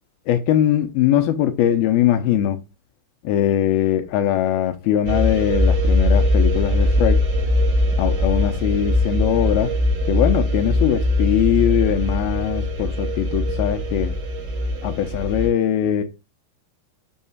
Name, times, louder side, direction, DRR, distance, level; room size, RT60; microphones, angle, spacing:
voice 1, 0.3-2.6 3.2-7.2 8.0-9.7 10.1-14.1 14.8-16.0, left 11 dB, 90° left, 2.1 m, -21 dB
sound 1, 5.1-15.5, left 1 dB, 70° right, 4.9 m, -21 dB
6.6 x 6.5 x 7.2 m
omnidirectional pair, 5.5 m